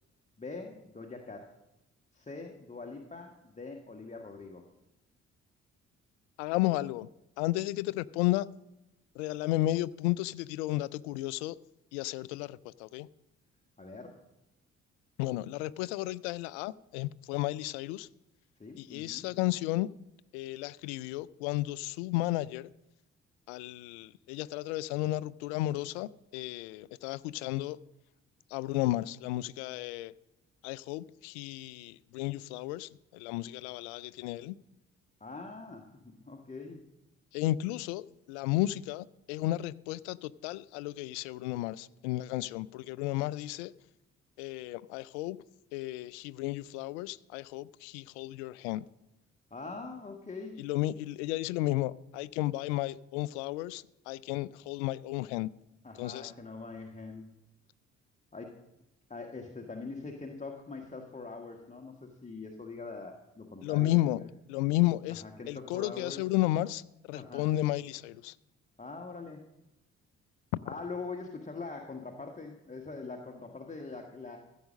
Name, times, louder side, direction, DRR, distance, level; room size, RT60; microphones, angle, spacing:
voice 1, 0.4-1.5 2.1-4.6 13.8-14.2 18.6-19.3 35.2-36.8 49.5-50.6 55.8-57.3 58.3-58.6 59.1-64.3 65.1-66.2 67.1-67.5 68.8-69.5 70.6-74.4, left 3 dB, 20° left, 1.4 m, -43 dB
voice 2, 6.4-7.1 7.4-8.5 9.2-11.6 11.9-13.1 15.2-18.1 18.8-19.9 20.3-22.7 23.5-27.8 28.5-30.1 30.6-34.6 37.3-43.7 44.4-45.4 45.7-48.9 50.6-55.5 56.0-56.3 63.6-64.2 64.5-68.3, left 17 dB, 70° left, 0.5 m, -33 dB
14.5 x 7.4 x 6.3 m
figure-of-eight pair, 45°, 36 cm